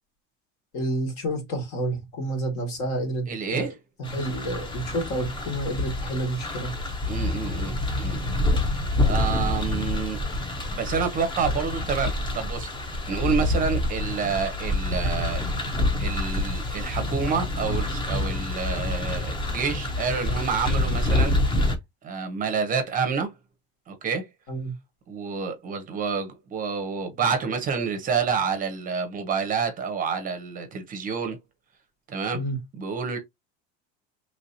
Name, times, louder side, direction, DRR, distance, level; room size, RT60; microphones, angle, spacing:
voice 1, 0.7-3.7 4.1-6.7 24.5-24.7 32.3-32.6, right 1 dB, 65° left, 1.8 m, -29 dB
voice 2, 3.3-3.7 7.1-8.2 9.0-10.2 10.4-12.7 13.1-15.4 16.0-21.3 22.0-23.3 23.9-24.3 25.1-31.4 32.1-32.4 32.8-33.2, right 5 dB, 30° right, 0.6 m, -28 dB
sound 1, 4.0-21.8, left 2 dB, 15° left, 0.5 m, -27 dB
3.1 x 2.8 x 2.6 m
cardioid pair, 155°, 29 cm